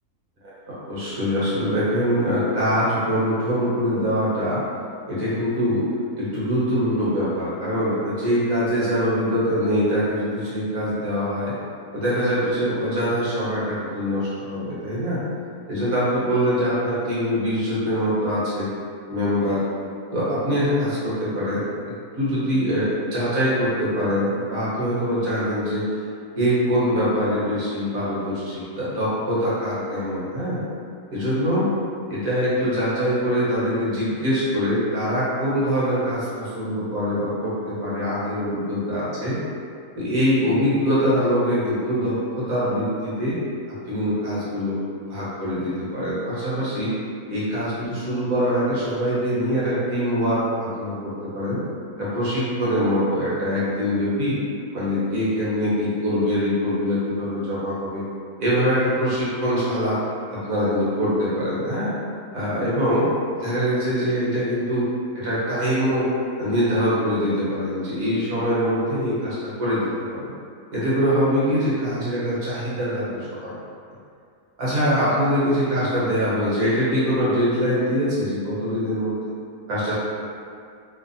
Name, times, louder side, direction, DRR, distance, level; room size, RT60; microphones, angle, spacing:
voice 1, 0.7-4.6 5.1-5.9 6.2-11.5 11.9-15.2 15.7-18.7 19.1-19.6 20.1-21.6 22.1-25.8 26.4-30.6 31.1-31.7 32.1-39.4 40.0-43.4 43.9-44.8 45.1-46.9 47.3-51.6 52.0-54.4 54.7-58.0 58.4-60.0 60.3-61.9 62.3-63.1 63.4-64.9 65.1-66.1 66.4-70.3 70.7-73.5 74.6-79.2 79.7-79.9, equal, 60° right, -10 dB, 1.3 m, -23 dB
3.2 x 2.0 x 2.5 m, 2.4 s
omnidirectional pair, 1.7 m